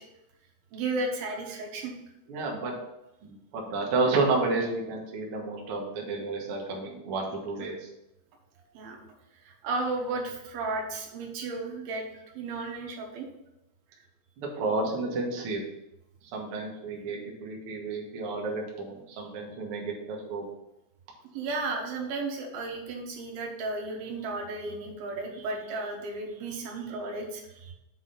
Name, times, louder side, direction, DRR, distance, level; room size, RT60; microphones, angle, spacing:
voice 1, 0.7-1.9 8.7-9.0 9.4-12.0 12.3-13.3 21.3-27.7, right 3 dB, 85° right, 1 dB, 3.1 m, -34 dB
voice 2, 2.3-2.8 3.2-7.9 14.4-15.6 16.3-20.4, right 3 dB, 55° right, -1 dB, 1.7 m, -31 dB
7.2 x 4.1 x 5.6 m, 0.89 s
omnidirectional pair, 4.2 m